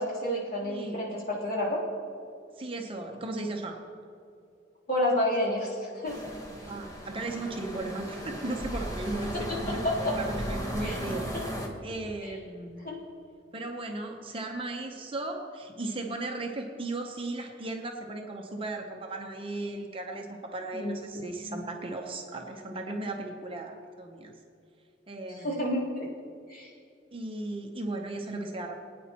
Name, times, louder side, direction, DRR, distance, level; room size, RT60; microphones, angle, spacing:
voice 1, 0.0-1.8 4.9-6.1 10.8-11.0 12.2-12.3 12.8-12.9 20.7-21.0 21.4-21.6 25.3-26.1 26.5-26.7, left 1 dB, 50° left, -6 dB, 3.2 m, -30 dB
voice 2, 0.6-1.0 2.6-3.8 6.7-11.5 11.8-13.0 13.5-24.3 25.1-25.7 27.1-28.8, right 2 dB, 30° right, 2 dB, 0.8 m, -36 dB
sound 1, 6.0-11.7, equal, 20° left, 1.1 m, -36 dB
20.0 x 9.3 x 3.0 m, 2.4 s
head